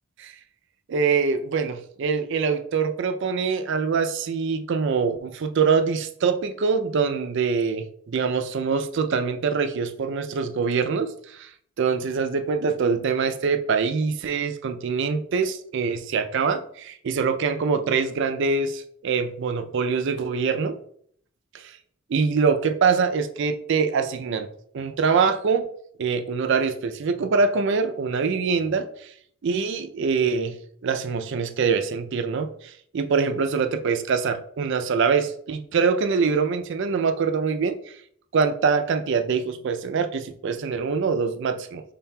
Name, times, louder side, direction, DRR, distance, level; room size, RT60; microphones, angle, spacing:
voice 1, 0.9-11.5 11.8-20.8 21.5-21.8 22.1-24.5 24.7-25.7 26.0-29.1 29.4-30.6 30.8-37.9 38.3-41.8, right 5 dB, 60° right, 8 dB, 0.4 m, -24 dB
5.6 x 3.9 x 2.2 m, 0.65 s
head